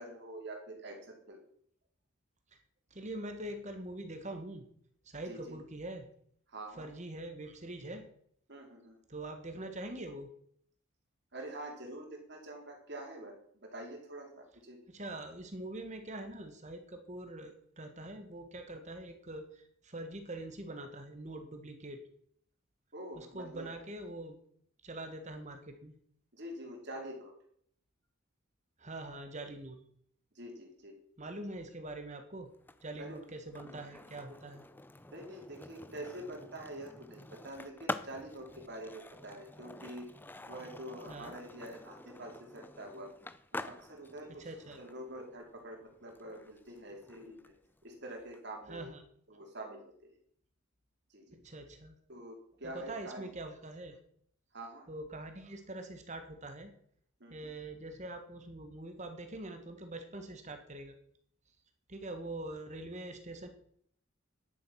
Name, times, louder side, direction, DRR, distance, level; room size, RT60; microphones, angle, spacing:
voice 1, 0.0-1.4 5.3-5.6 6.5-6.9 8.5-9.0 11.3-14.9 22.9-23.7 26.3-27.3 30.3-31.0 33.0-33.3 33.6-33.8 35.1-40.1 40.5-43.1 43.5-44.5 44.8-47.5 47.8-48.9 49.3-50.1 51.1-51.4 52.1-53.2 54.5-54.9 57.2-57.5, right 1 dB, 55° right, 1 dB, 3.1 m, -46 dB
voice 2, 2.9-4.7 5.0-6.1 6.8-8.1 9.1-10.3 14.9-22.0 23.2-24.4 24.8-25.9 28.8-29.8 31.2-32.5 32.8-34.7 41.1-41.3 44.3-44.8 48.7-49.0 51.3-52.0 52.6-54.0 54.9-56.7 57.3-60.9 61.9-63.5, right 1 dB, 35° right, 6 dB, 1.4 m, -44 dB
Skateboard, 32.5-48.4, left 2 dB, 10° left, 0.4 m, -47 dB
10.5 x 7.5 x 6.3 m, 0.64 s
head